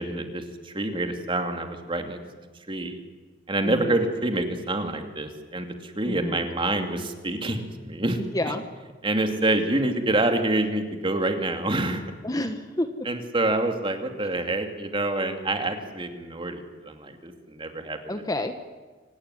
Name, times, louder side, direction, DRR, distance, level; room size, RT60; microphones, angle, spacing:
voice 1, 0.0-2.2 2.7-3.0 3.5-8.2 9.0-12.0 13.1-18.0, right 2 dB, 30° right, 5 dB, 2.6 m, -27 dB
voice 2, 3.6-4.0 6.0-6.5 8.3-8.6 12.2-13.1 18.1-18.6, left 1 dB, 20° left, 8 dB, 1.2 m, -29 dB
25.5 x 17.5 x 9.9 m, 1.4 s
head